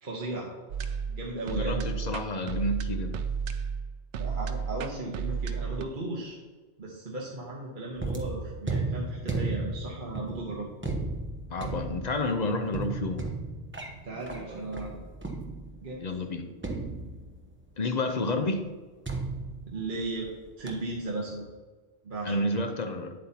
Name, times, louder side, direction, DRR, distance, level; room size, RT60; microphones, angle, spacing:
voice 1, 0.0-0.5 1.1-1.9 4.2-6.4 6.8-10.7 14.0-15.1 15.8-16.0 19.7-21.4 22.0-22.5, right 2 dB, 45° right, -3 dB, 1.2 m, -36 dB
sound 1, 0.7-5.8, right 6 dB, 80° right, 0.9 m, -33 dB
voice 2, 1.5-3.2 11.5-13.2 16.0-16.5 17.8-18.6 22.2-23.1, left 2 dB, 45° left, 6 dB, 0.7 m, -30 dB
sound 2, 8.0-15.9 16.6-17.6 19.0-20.3 20.7-21.0, right 3 dB, 10° right, 0.8 m, -35 dB
8.8 x 7.8 x 2.8 m, 1.3 s
omnidirectional pair, 1.2 m